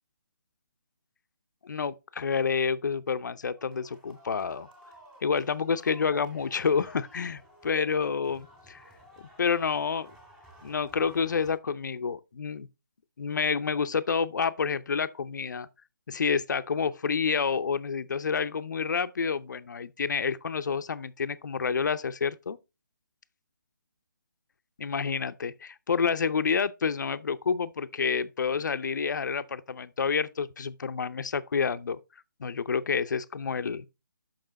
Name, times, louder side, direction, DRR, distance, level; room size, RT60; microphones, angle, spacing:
voice 1, 1.6-4.7 5.2-7.4 7.6-8.8 9.4-10.1 10.6-12.7 13.2-15.7 16.1-22.6 24.8-32.0 32.4-33.9, left 6 dB, 65° left, 0.6 m, -29 dB
sound 1, 3.6-11.6, equal, 5° right, 2.0 m, -54 dB
6.7 x 6.0 x 4.0 m
figure-of-eight pair, 150°, 11 cm